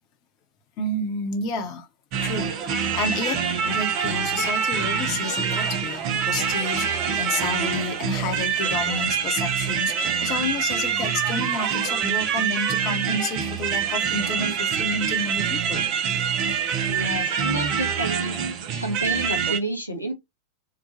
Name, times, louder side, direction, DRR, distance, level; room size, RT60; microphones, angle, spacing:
voice 1, 0.8-1.9 2.2-2.5 2.9-6.9 7.2-15.8, left 3 dB, 40° left, 0.8 m, -30 dB
sound 1, 2.1-19.6, right 7 dB, 40° right, 0.5 m, -25 dB
voice 2, 16.9-18.4 18.8-20.1, right 1 dB, 90° left, 0.6 m, -29 dB
2.9 x 2.2 x 2.7 m
figure-of-eight pair, 90°, 0 cm